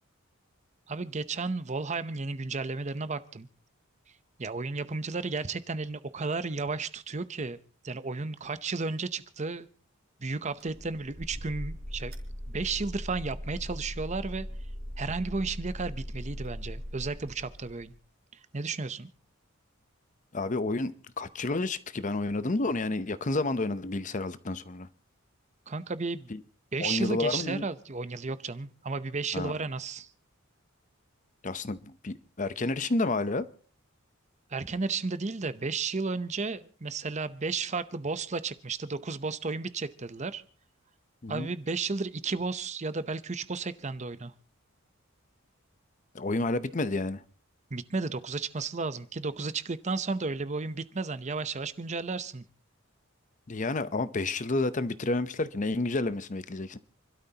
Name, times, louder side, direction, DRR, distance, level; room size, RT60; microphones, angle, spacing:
voice 1, 0.9-3.5 4.4-7.6 7.8-9.7 10.2-12.1 12.5-14.5 15.0-17.9 18.5-19.1 25.7-26.3 26.7-30.1 34.5-40.4 41.3-44.3 47.7-52.4, right 4 dB, 30° right, 0.7 m, -33 dB
sound 1, 10.6-18.0, equal, 50° right, 3.7 m, -39 dB
voice 2, 20.3-24.9 26.3-26.4 26.8-27.6 29.3-29.5 31.4-33.5 41.2-41.5 46.1-47.2 53.5-56.8, left 2 dB, 35° left, 0.7 m, -30 dB
29.0 x 13.0 x 2.9 m
head